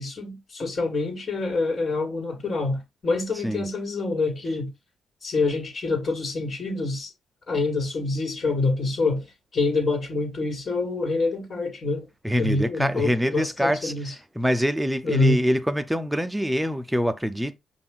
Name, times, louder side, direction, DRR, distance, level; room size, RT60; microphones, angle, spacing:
voice 1, 0.0-4.7 5.2-7.1 7.5-9.3 9.5-12.1 12.4-14.1 15.0-15.4, left 3 dB, 40° left, 2.0 m, -26 dB
voice 2, 12.2-17.6, equal, 5° right, 0.6 m, -25 dB
5.4 x 2.5 x 3.8 m
cardioid pair, 90°, 0 cm